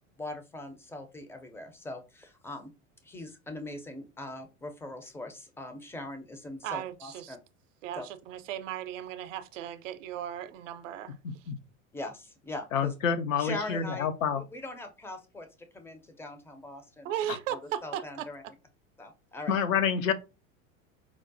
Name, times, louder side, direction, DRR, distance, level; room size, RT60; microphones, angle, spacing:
voice 1, 0.2-2.7 3.0-7.4 8.0-8.1 11.9-12.9 13.4-14.1 14.3-17.1 17.5-18.4 19.0-19.6, left 2 dB, 5° left, 0.4 m, -41 dB
voice 2, 6.6-7.4 7.8-11.2 17.0-18.3, right 11 dB, 70° right, 0.5 m, -36 dB
voice 3, 11.2-11.5 12.7-14.4 19.5-20.1, left 7 dB, 80° left, 0.6 m, -28 dB
4.6 x 2.0 x 2.5 m
hypercardioid pair, 85°, 39 cm